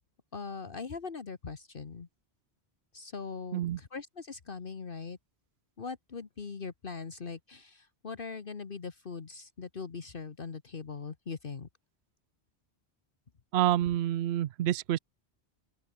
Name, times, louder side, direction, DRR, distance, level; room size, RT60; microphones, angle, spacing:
voice 1, 0.3-2.1 2.9-5.2 5.8-11.7, left 5 dB, 55° left, 1.4 m, -41 dB
voice 2, 13.5-15.0, right 12 dB, 75° right, 0.9 m, -28 dB
open air
omnidirectional pair, 1.1 m